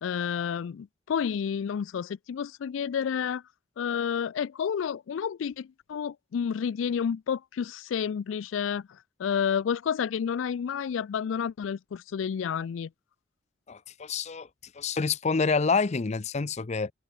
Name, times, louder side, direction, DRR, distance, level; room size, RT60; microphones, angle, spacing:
voice 1, 0.0-3.4 3.8-12.9, left 7 dB, 90° left, 0.4 m, -30 dB
voice 2, 13.7-14.5 14.7-16.9, left 4 dB, 35° left, 0.5 m, -27 dB
head